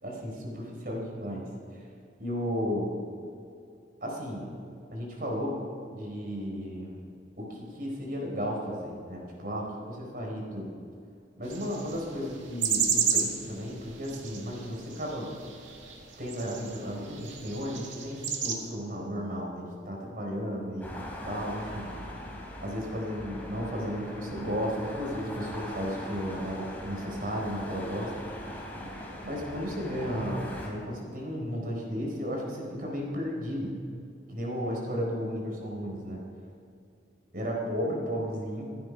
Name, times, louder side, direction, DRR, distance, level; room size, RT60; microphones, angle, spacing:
voice 1, 0.0-1.8 2.2-2.9 4.0-4.6 4.9-5.6 5.9-7.0 7.4-10.7 11.4-15.3 16.2-21.9 22.6-28.1 29.2-33.7 34.3-36.2 37.3-38.6, equal, 50° right, -1 dB, 4.4 m, -34 dB
sound 1, 11.5-18.5, right 7 dB, 90° right, 2.1 m, -33 dB
sound 2, 20.8-30.7, left 1 dB, 10° left, 3.1 m, -41 dB
27.5 x 9.4 x 5.4 m, 2.6 s
head